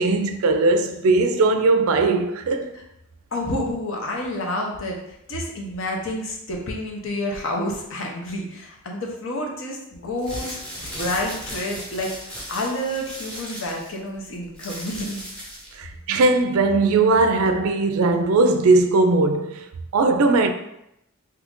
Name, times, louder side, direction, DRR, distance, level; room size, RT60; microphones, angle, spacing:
voice 1, 0.0-2.7 15.8-19.7 19.9-20.5, right 3 dB, 70° right, 0.4 m, -19 dB
voice 2, 3.3-15.2, left 1 dB, 65° left, 0.7 m, -29 dB
sound 1, 10.1-15.8, equal, 5° left, 0.8 m, -36 dB
2.8 x 2.5 x 3.6 m
head